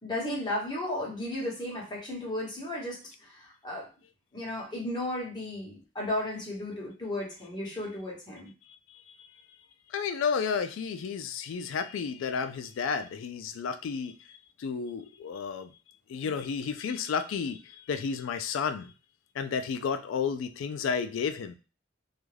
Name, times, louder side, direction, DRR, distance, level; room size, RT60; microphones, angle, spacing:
voice 1, 0.0-3.9 4.3-8.5, left 1 dB, 20° left, -4 dB, 0.9 m, -34 dB
voice 2, 9.9-14.1 14.6-15.7 16.1-18.9 19.4-21.5, left 6 dB, 85° left, 9 dB, 0.3 m, -32 dB
2.4 x 2.2 x 3.1 m, 0.34 s
head